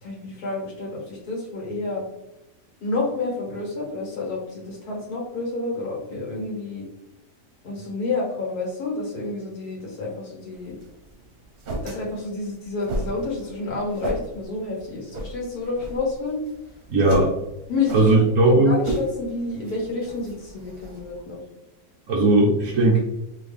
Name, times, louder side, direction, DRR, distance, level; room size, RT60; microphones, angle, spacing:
voice 1, 0.0-2.0 2.8-6.9 7.6-10.8 11.8-16.4 17.0-17.2 17.7-18.2 18.5-21.4, left 3 dB, 75° left, -2 dB, 2.1 m, -29 dB
sound 1, 10.5-21.2, right 1 dB, 75° right, 1.5 m, -35 dB
voice 2, 16.9-17.3 17.9-18.7 22.1-23.0, right 2 dB, 60° right, -3 dB, 1.3 m, -17 dB
4.5 x 3.4 x 3.4 m, 0.92 s
omnidirectional pair, 1.6 m